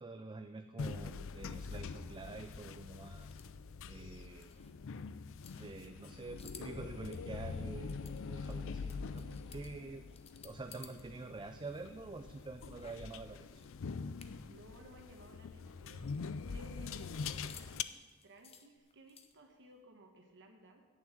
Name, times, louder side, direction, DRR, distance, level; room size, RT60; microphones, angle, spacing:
voice 1, 0.0-3.3 3.9-4.5 5.5-9.2 9.5-10.0 10.4-13.7, right 3 dB, 20° right, 7 dB, 0.4 m, -47 dB
sound 1, 0.8-17.8, left 5 dB, 65° left, 0.5 m, -44 dB
sound 2, 3.3-11.0 11.3-14.6 14.9-15.0 15.3-19.6, left 7 dB, 30° left, 0.8 m, -59 dB
voice 2, 9.1-9.5 14.5-16.2 16.5-17.9 18.2-20.8, right 1 dB, 55° right, 3 dB, 1.2 m, -58 dB
8.6 x 7.2 x 8.8 m, 1.3 s
head